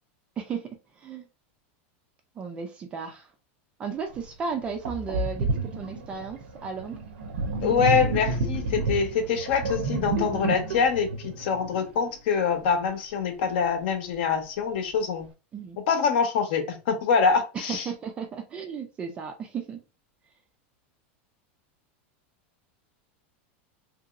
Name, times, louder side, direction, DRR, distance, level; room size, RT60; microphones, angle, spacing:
voice 1, 0.4-0.7 1.0-1.3 2.4-3.3 3.8-7.0 15.5-15.8 17.7-19.8, right 6 dB, 15° right, 0.4 m, -34 dB
Sink (filling or washing), 4.2-4.3 4.9-12.2, right 2 dB, 75° right, 0.7 m, -30 dB
voice 2, 7.6-15.3 15.9-17.9, left 6 dB, 55° left, 0.9 m, -25 dB
2.9 x 2.8 x 2.4 m
supercardioid pair, 175°, 7 cm